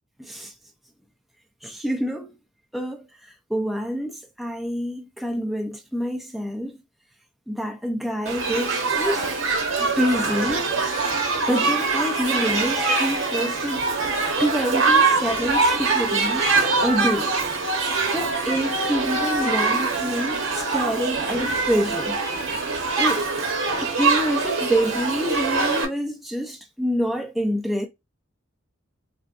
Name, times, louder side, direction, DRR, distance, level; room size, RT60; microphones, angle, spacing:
voice 1, 0.2-0.5 1.6-2.4 2.7-6.8 7.5-9.3 9.8-11.0 11.5-17.3 18.1-22.2 23.0-23.3 23.8-27.9, equal, ahead, 0.4 m, -27 dB
Shout / Human group actions, 8.3-25.9, right 3 dB, 85° right, 1.0 m, -23 dB
4.3 x 2.7 x 2.5 m
head